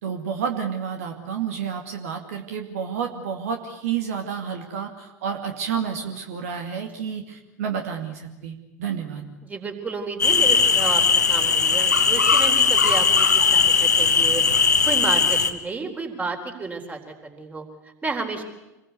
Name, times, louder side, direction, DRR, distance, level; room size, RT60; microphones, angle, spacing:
voice 1, 0.0-9.2, right 7 dB, 60° right, 4 dB, 2.4 m, -30 dB
voice 2, 9.4-11.0 11.3-13.1 13.5-14.4 14.8-17.7 18.0-18.4, right 4 dB, 15° right, 5 dB, 4.1 m, -31 dB
sound 1, 10.2-15.5, left 5 dB, 80° left, 1.4 m, -19 dB
27.0 x 21.0 x 8.3 m, 1.0 s
figure-of-eight pair, 80°, 9 cm